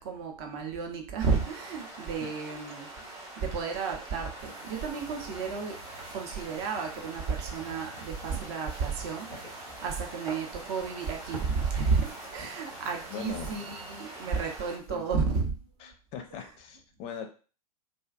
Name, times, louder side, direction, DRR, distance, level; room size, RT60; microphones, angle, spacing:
voice 1, 0.0-5.8 6.1-15.6 15.8-15.9 16.3-16.5, right 5 dB, 45° right, 3 dB, 0.6 m, -32 dB
sound 1, 1.2-14.8, right 2 dB, 15° right, 0.9 m, -45 dB
sound 2, 4.4-15.4, right 2 dB, 80° right, 1.3 m, -47 dB
voice 2, 13.1-13.6 14.9-15.0 15.8-17.3, left 7 dB, 30° left, 5 dB, 0.5 m, -40 dB
2.5 x 2.2 x 2.4 m, 0.37 s
figure-of-eight pair, 95°, 19 cm